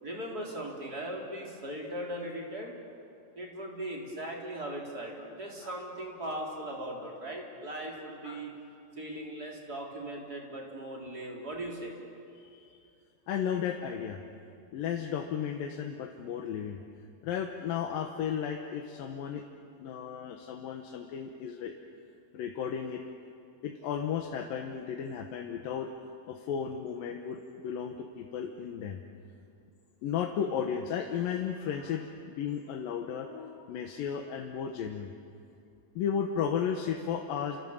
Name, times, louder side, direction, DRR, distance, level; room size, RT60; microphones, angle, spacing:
voice 1, 0.0-2.7 3.3-8.5 8.9-12.0, right 1 dB, 25° right, -2 dB, 4.2 m, -39 dB
voice 2, 12.4-12.8 13.3-14.2 14.7-16.8 17.2-19.4 19.8-21.7 22.3-23.0 23.6-25.9 26.3-29.0 30.0-35.1 36.0-37.6, left 8 dB, 90° left, 3 dB, 3.0 m, -34 dB
29.5 x 26.5 x 7.2 m, 2.5 s
omnidirectional pair, 3.9 m